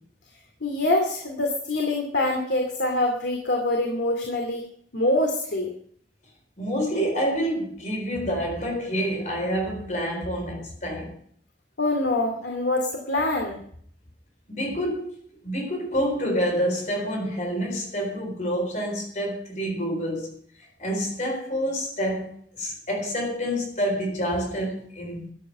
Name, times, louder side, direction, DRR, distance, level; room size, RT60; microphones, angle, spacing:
voice 1, 0.6-4.6 4.9-5.7 11.8-13.6, left 2 dB, 85° left, 2.4 m, -25 dB
voice 2, 6.6-11.1 14.5-15.2 15.4-20.3 20.8-25.3, equal, 45° left, 4.1 m, -28 dB
13.0 x 8.7 x 7.1 m
head